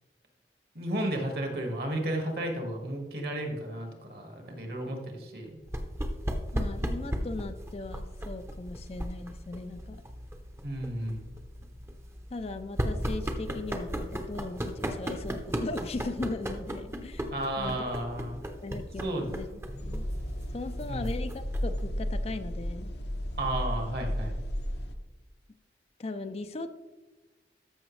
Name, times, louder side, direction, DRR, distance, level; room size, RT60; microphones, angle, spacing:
voice 1, 0.7-5.6 10.6-11.3 17.3-18.4 19.0-19.6 20.9-21.1 23.4-24.4, right 1 dB, 60° right, 3 dB, 1.8 m, -33 dB
sound 1, 5.7-21.8, equal, 15° right, 0.7 m, -36 dB
voice 2, 6.5-10.0 12.3-17.3 17.6-17.8 18.6-19.5 19.8-20.0 20.5-22.9 26.0-26.7, left 2 dB, 35° left, 10 dB, 0.4 m, -38 dB
sound 2, 19.8-24.9, equal, 75° left, 0.8 m, -33 dB
13.5 x 5.9 x 3.2 m, 1.2 s
head